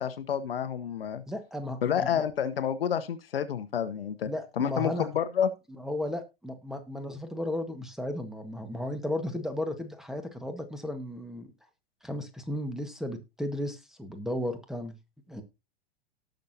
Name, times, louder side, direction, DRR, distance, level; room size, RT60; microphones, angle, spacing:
voice 1, 0.0-1.2 1.8-4.3 4.6-5.5, left 8 dB, 70° left, 1.1 m, -29 dB
voice 2, 1.3-2.2 4.2-5.1 5.8-11.5 12.0-14.9 15.3-15.4, left 1 dB, ahead, 1.6 m, -34 dB
18.0 x 6.5 x 2.8 m
figure-of-eight pair, 95°, 30 cm